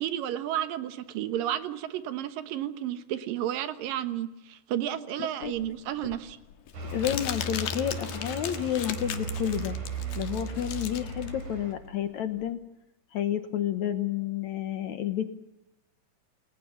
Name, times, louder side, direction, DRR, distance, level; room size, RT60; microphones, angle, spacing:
voice 1, 0.0-6.4, right 11 dB, 85° right, 11 dB, 3.0 m, -32 dB
voice 2, 5.2-5.5 6.9-9.8 10.2-12.6 13.1-15.3, left 10 dB, 65° left, 9 dB, 2.3 m, -30 dB
Crumpling crinkling, 5.4-12.5, left 10 dB, 85° left, 3.1 m, -38 dB
sound 1, 6.7-11.7, right 3 dB, 70° right, 5.5 m, -36 dB
28.5 x 20.0 x 7.2 m, 0.93 s
omnidirectional pair, 3.8 m